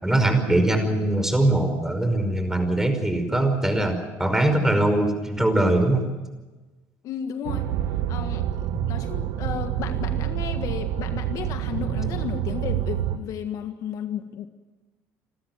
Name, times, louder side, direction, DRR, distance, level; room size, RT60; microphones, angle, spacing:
voice 1, 0.0-6.1, right 1 dB, 5° right, 7 dB, 5.3 m, -22 dB
voice 2, 7.0-7.7 8.1-8.5 8.9-14.5, left 9 dB, 65° left, 8 dB, 1.6 m, -33 dB
sound 1, 7.4-13.2, right 12 dB, 75° right, 1.4 m, -27 dB
28.5 x 13.0 x 9.3 m, 1.2 s
supercardioid pair, 80°, 6 cm